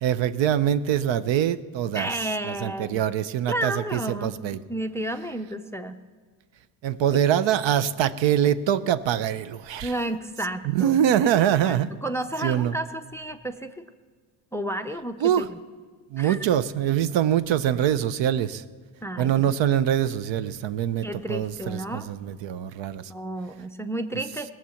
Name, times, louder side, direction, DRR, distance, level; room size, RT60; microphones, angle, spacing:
voice 1, 0.0-2.1 2.4-4.6 6.8-9.9 10.6-11.9 12.4-12.8 15.2-15.5 16.1-18.6 19.2-23.1, right 10 dB, 65° right, 15 dB, 0.7 m, -24 dB
voice 2, 1.9-3.0 3.5-4.3 4.7-6.0 9.8-11.0 11.6-13.8 14.5-15.6 16.2-16.4 19.0-19.6 21.0-22.0 23.1-24.5, right 1 dB, 5° left, 9 dB, 0.4 m, -31 dB
18.0 x 7.3 x 7.1 m, 1.5 s
cardioid pair, 95°, 49 cm